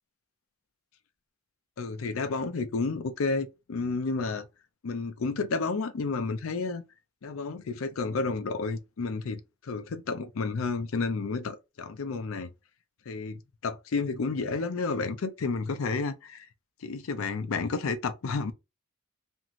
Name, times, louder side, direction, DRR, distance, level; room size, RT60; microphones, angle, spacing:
voice 1, 1.8-4.5 4.8-6.8 7.2-12.5 13.1-16.5 16.8-18.5, left 4 dB, 85° left, 0.5 m, -31 dB
2.6 x 2.5 x 3.0 m
head